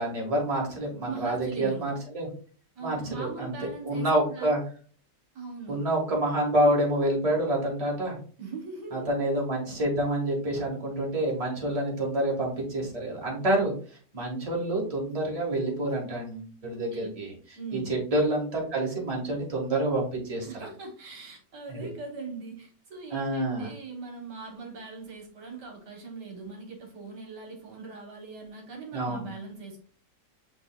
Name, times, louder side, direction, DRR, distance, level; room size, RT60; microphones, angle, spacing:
voice 1, 0.0-2.3 2.8-3.5 3.8-4.6 5.7-8.2 8.9-13.7 14.1-20.5 21.7-21.9 23.1-23.7 28.9-29.3, right 1 dB, 20° right, -2 dB, 1.4 m, -28 dB
voice 2, 1.1-1.9 2.7-4.5 5.3-5.8 8.4-9.1 16.9-17.1 17.5-17.9 20.4-29.8, right 4 dB, 70° right, 1 dB, 1.6 m, -40 dB
7.9 x 3.0 x 2.2 m, 0.43 s
omnidirectional pair, 1.9 m